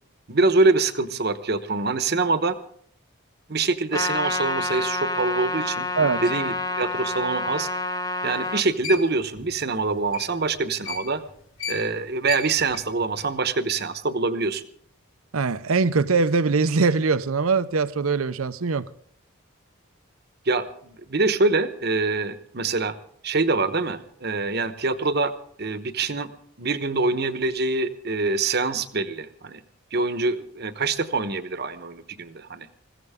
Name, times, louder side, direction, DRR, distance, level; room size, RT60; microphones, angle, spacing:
voice 1, 0.3-2.6 3.5-5.9 6.2-7.7 8.2-11.2 11.7-14.6 20.5-23.0 23.2-25.3 25.6-26.3 26.6-29.6 29.9-32.7, right 3 dB, 50° right, 1.0 m, -25 dB
Trumpet, 3.9-8.6, left 2 dB, 15° left, 0.7 m, -28 dB
sound 1, 8.3-11.3 11.6-13.3, left 6 dB, 75° left, 2.9 m, -36 dB
voice 2, 15.3-18.9, right 4 dB, 85° right, 0.7 m, -22 dB
21.0 x 16.0 x 3.6 m
head